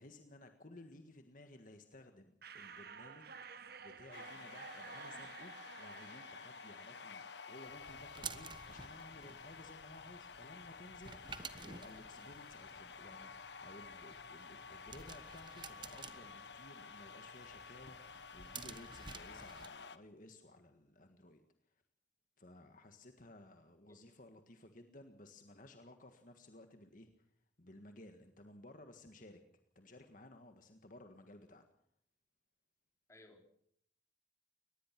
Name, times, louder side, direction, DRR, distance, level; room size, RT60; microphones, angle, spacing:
voice 1, 0.0-3.3 3.8-21.4 21.7-21.8 22.4-27.3 27.6-29.4 29.7-31.6, left 1 dB, 45° left, 6 dB, 1.7 m, -57 dB
sound 1, 2.4-7.9, right 5 dB, 60° right, 1.5 m, -53 dB
sound 2, 4.1-20.0, left 5 dB, 70° left, 1.2 m, -52 dB
sound 3, 7.7-19.7, right 5 dB, 25° right, 1.2 m, -53 dB
voice 2, 33.1-33.5, left 1 dB, 15° left, 4 dB, 3.6 m, -60 dB
23.5 x 19.5 x 6.0 m, 0.69 s
head